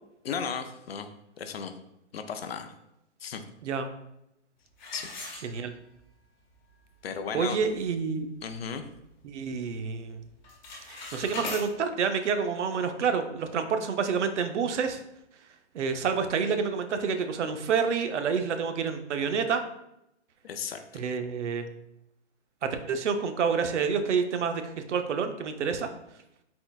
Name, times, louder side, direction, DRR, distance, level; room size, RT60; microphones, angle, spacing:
voice 1, 0.2-1.1 1.4-1.7 2.1-2.7 3.2-3.4 4.9-5.1 7.0-7.6 8.4-8.8 20.4-21.0, left 6 dB, 60° left, 8 dB, 0.4 m, -35 dB
sound 1, 4.8-6.0 6.5-6.6 7.2-7.3 7.6-7.9 8.4-9.5 9.8-10.1 10.4-11.7, left 3 dB, 40° left, 0.9 m, -40 dB
voice 2, 5.4-5.7 7.3-8.3 9.2-10.2 10.9-15.0 15.7-19.6 20.9-21.7 22.6-24.6 24.9-25.9, right 6 dB, 75° right, 8 dB, 0.6 m, -28 dB
4.0 x 3.8 x 2.3 m, 0.83 s
hypercardioid pair, 175°, 35 cm